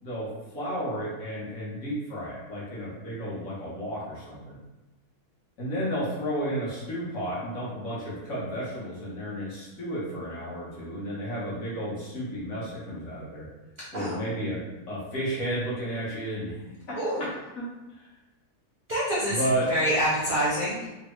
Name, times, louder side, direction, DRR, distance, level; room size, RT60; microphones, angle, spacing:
voice 1, 0.0-4.6 5.6-13.5 13.9-14.6 14.9-16.5 16.9-17.0 17.5-17.6 17.9-18.1 19.3-19.7, equal, 60° left, -8 dB, 1.5 m, -32 dB
voice 2, 17.0-17.3 18.9-19.4 19.7-20.9, equal, 50° right, -8 dB, 0.6 m, -26 dB
3.4 x 2.3 x 3.0 m, 1.1 s
omnidirectional pair, 1.6 m